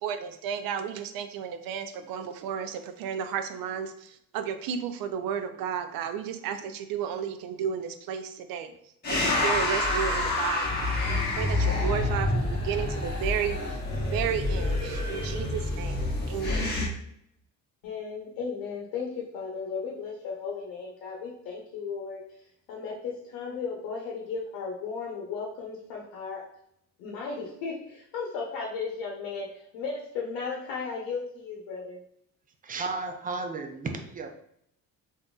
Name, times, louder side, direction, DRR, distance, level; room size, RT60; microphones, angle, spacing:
voice 1, 0.0-8.7 9.1-13.6 14.1-16.8, right 8 dB, 80° right, 8 dB, 0.5 m, -33 dB
sound 1, 9.0-16.9, left 2 dB, 30° left, 1.2 m, -28 dB
voice 2, 17.8-19.1 19.3-22.2 22.7-26.4 27.0-32.0, left 5 dB, 90° left, -2 dB, 0.8 m, -35 dB
voice 3, 32.6-34.3, right 3 dB, 25° right, 5 dB, 0.4 m, -33 dB
3.8 x 2.6 x 2.3 m, 0.72 s
cardioid pair, 115°, 34 cm